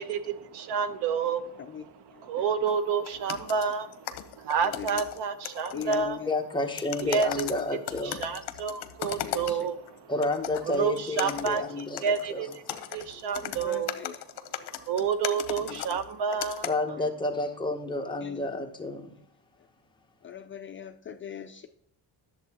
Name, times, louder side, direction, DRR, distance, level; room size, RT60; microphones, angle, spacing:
voice 1, 0.0-1.9 2.2-6.2 7.0-7.5 8.0-10.1 10.7-12.6 12.9-14.1 14.9-16.7, right 6 dB, 75° right, 11 dB, 0.9 m, -29 dB
voice 2, 2.1-2.5 4.6-5.0 5.7-6.3 9.2-9.7 13.2-14.1 15.7-16.0 17.0-17.1 18.2-18.4 20.2-21.7, left 9 dB, 30° left, 7 dB, 0.4 m, -40 dB
sound 1, 2.7-2.8 3.0-6.1 6.8-9.9 10.2-16.7, left 12 dB, 70° left, 0.8 m, -37 dB
voice 3, 6.3-8.2 10.1-12.5 16.6-19.1, left 2 dB, 10° left, 2 dB, 0.9 m, -30 dB
10.5 x 7.2 x 2.9 m, 0.67 s
cardioid pair, 160°, 41 cm